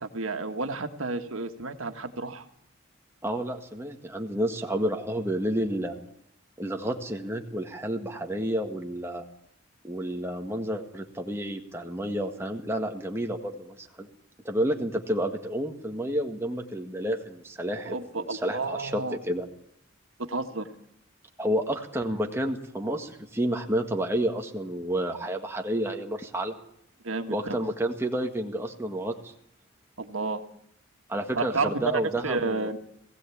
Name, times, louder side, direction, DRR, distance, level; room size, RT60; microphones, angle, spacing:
voice 1, 0.0-2.5 17.9-19.2 20.3-20.7 27.0-27.6 30.0-30.4 31.4-32.8, right 3 dB, 90° right, 6 dB, 1.7 m, -31 dB
voice 2, 3.2-5.9 6.6-9.2 9.8-14.1 14.5-19.5 21.4-26.5 27.3-29.3 31.1-32.7, right 1 dB, 10° right, 2 dB, 1.7 m, -30 dB
19.5 x 16.5 x 8.5 m, 0.71 s
head